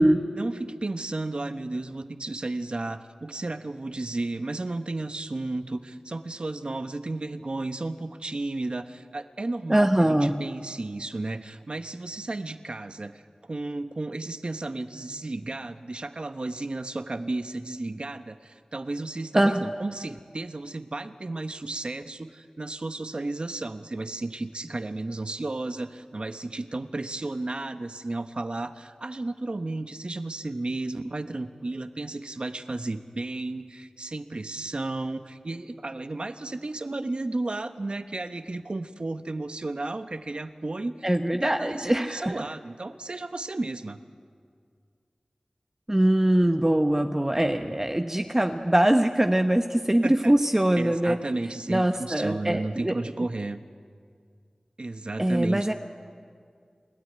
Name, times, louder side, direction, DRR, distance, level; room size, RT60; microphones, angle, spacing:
voice 1, 0.3-41.1 41.4-44.0 50.0-50.3 50.8-53.6 54.8-55.7, right 2 dB, 55° right, 9 dB, 1.1 m, -33 dB
voice 2, 9.7-10.4 19.3-19.6 41.0-42.4 45.9-51.2 51.7-52.9 55.2-55.7, right 1 dB, 20° right, 5 dB, 0.9 m, -22 dB
29.5 x 13.0 x 9.5 m, 2.1 s
wide cardioid pair, 55°, 2 cm